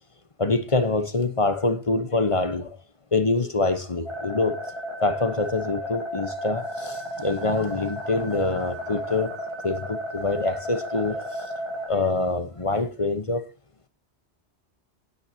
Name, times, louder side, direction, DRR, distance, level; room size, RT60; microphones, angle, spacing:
voice 1, 0.4-2.8 3.1-4.6 5.0-9.3 9.6-11.4 11.9-13.4, left 3 dB, 30° left, 1.0 m, -25 dB
sound 1, 4.1-11.9, equal, 25° right, 1.9 m, -33 dB
16.0 x 9.6 x 2.8 m
omnidirectional pair, 1.1 m